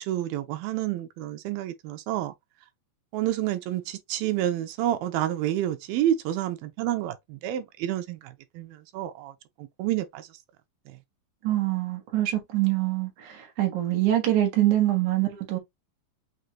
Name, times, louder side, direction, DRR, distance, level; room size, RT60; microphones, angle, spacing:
voice 1, 0.0-2.3 3.1-9.3 9.6-10.3 10.9-11.0, right 12 dB, 85° right, 2.5 m, -29 dB
voice 2, 11.4-13.1 13.6-15.6, right 14 dB, 65° right, 2.6 m, -24 dB
6.4 x 2.5 x 2.8 m
omnidirectional pair, 4.1 m